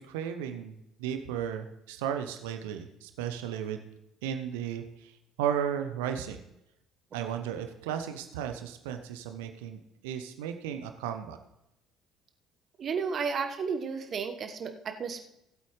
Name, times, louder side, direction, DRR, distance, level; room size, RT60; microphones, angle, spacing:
voice 1, 0.0-3.9 4.2-6.4 7.1-11.4, right 9 dB, 70° right, 7 dB, 0.8 m, -35 dB
voice 2, 12.8-15.2, right 5 dB, 45° right, 7 dB, 1.2 m, -32 dB
18.5 x 8.3 x 3.2 m, 0.85 s
figure-of-eight pair, 55°, 0 cm